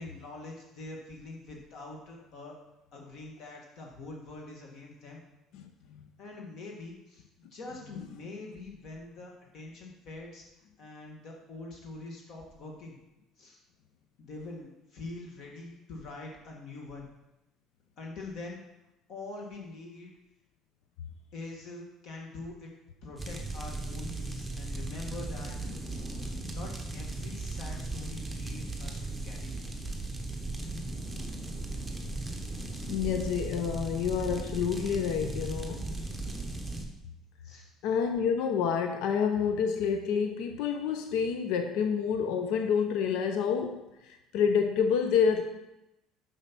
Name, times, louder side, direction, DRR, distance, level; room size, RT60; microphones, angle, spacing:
voice 1, 0.0-2.6 2.9-5.2 6.2-10.4 10.8-13.0 13.4-13.6 14.2-17.1 18.0-18.6 19.1-20.1 21.3-22.7 23.0-26.1 26.5-29.6 37.4-37.7, left 2 dB, 45° left, 0 dB, 1.5 m, -44 dB
sound 1, 23.2-36.8, right 2 dB, 5° right, 0.9 m, -37 dB
voice 2, 32.9-35.8 37.8-45.4, left 7 dB, 70° left, 5 dB, 0.7 m, -28 dB
7.3 x 5.7 x 6.0 m, 0.92 s
cardioid pair, 170°, 0 cm